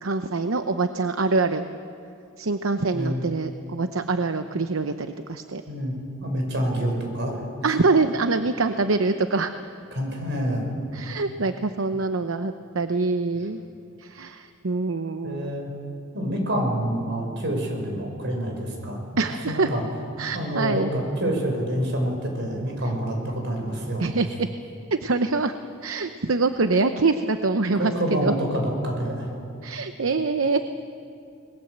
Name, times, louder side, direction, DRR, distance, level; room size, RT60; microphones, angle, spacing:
voice 1, 0.0-1.7 2.4-5.6 7.6-9.5 10.9-13.6 14.0-15.5 19.2-19.7 20.2-20.9 24.0-24.5 24.9-25.5 25.8-27.9 28.2-28.3 29.6-30.6, right 3 dB, 80° right, 8 dB, 0.8 m, -24 dB
voice 2, 6.2-7.4 9.9-10.7 15.2-15.7 16.1-19.8 20.3-24.1 27.6-29.3, right 1 dB, 60° right, 2 dB, 5.8 m, -27 dB
28.5 x 20.5 x 8.0 m, 2.7 s
head